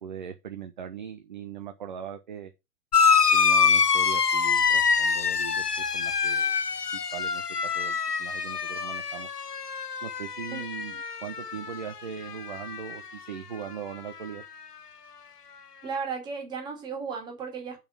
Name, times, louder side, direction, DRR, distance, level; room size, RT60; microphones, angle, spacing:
voice 1, 0.0-2.5 3.3-6.6 7.1-7.4 7.7-9.3 10.0-14.4, right 8 dB, 30° right, 0.7 m, -39 dB
sound 1, 2.9-11.9 12.2-13.0 14.1-14.2, left 6 dB, 75° left, 1.1 m, -25 dB
voice 2, 15.8-17.8, right 5 dB, 10° right, 2.0 m, -34 dB
6.9 x 5.7 x 7.2 m
figure-of-eight pair, 140°, 47 cm